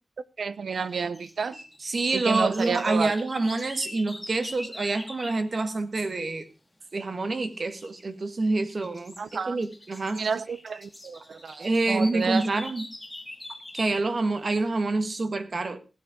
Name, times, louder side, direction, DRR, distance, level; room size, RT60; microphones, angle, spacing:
voice 1, 0.4-1.6 2.1-3.1 9.2-9.6 10.1-12.5, right 5 dB, 85° right, 0.8 m, -30 dB
sound 1, 0.7-5.5 7.7-8.1 8.5-14.1, left 1 dB, 10° left, 1.8 m, -44 dB
voice 2, 1.8-6.5 6.9-10.2 11.6-12.9 13.7-15.8, right 2 dB, 45° right, 1.6 m, -27 dB
15.5 x 8.4 x 5.1 m
wide cardioid pair, 135°, 0 cm